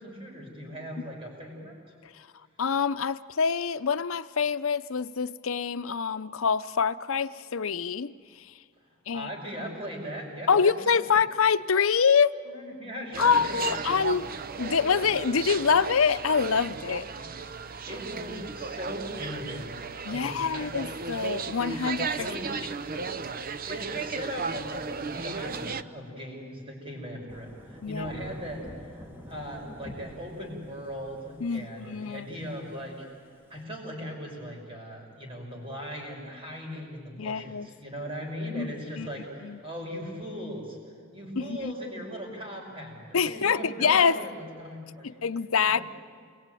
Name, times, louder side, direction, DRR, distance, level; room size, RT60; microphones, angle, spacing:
voice 1, 0.0-1.8 9.1-11.2 12.4-14.2 17.1-17.3 17.9-20.8 21.5-21.8 22.2-22.6 23.6-33.1 33.5-40.8 41.1-45.2 45.6-45.8, equal, 25° right, 0 dB, 5.9 m, -39 dB
voice 2, 2.6-8.1 9.1-9.3 10.5-12.3 13.2-14.3 14.6-17.1 20.0-22.3 27.8-28.1 31.4-32.5 37.2-37.7 38.5-39.1 39.4-39.6 41.4-41.7 43.1-44.2 45.2-45.8, left 6 dB, 90° left, 12 dB, 0.7 m, -25 dB
sound 1, 13.1-25.8, right 5 dB, 45° right, 0.7 m, -35 dB
Thunder / Rain, 27.3-33.6, equal, 10° right, 2.2 m, -46 dB
28.5 x 21.5 x 9.2 m, 2.1 s
head